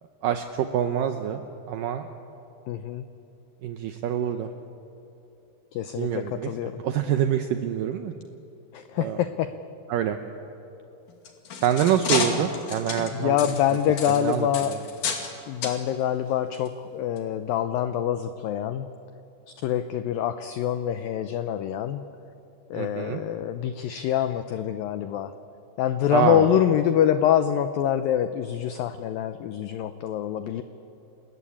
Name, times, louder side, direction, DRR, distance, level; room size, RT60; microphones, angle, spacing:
voice 1, 0.2-1.4 1.7-2.1 3.6-4.5 6.0-8.1 9.0-9.2 9.9-10.2 11.6-13.4 14.1-14.8 22.7-23.2 26.1-26.5, right 10 dB, 80° right, 7 dB, 2.0 m, -26 dB
voice 2, 2.7-3.1 5.7-6.8 8.7-9.5 13.1-14.7 15.5-18.9 19.5-22.0 22.7-25.3 25.8-30.6, left 10 dB, 85° left, 10 dB, 2.0 m, -25 dB
sound 1, 11.1-15.3 15.6-15.8 16.5-16.7 17.2-17.3, left 5 dB, 55° left, 3.5 m, -30 dB
29.0 x 20.5 x 8.6 m, 3.0 s
omnidirectional pair, 5.0 m